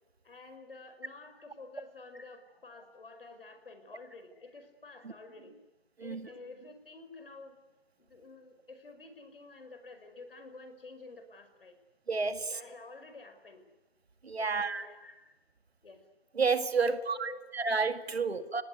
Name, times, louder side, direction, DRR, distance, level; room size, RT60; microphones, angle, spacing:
voice 1, 0.2-5.6 6.0-7.6 8.0-11.8 12.4-13.6 14.4-15.3 15.8-16.1 16.8-17.4 18.2-18.4, left 3 dB, 65° left, 5.2 m, -49 dB
voice 2, 12.1-12.5 14.2-14.9 16.4-18.6, right 4 dB, 85° right, 2.2 m, -30 dB
27.5 x 18.5 x 9.6 m
hypercardioid pair, 165°, 31 cm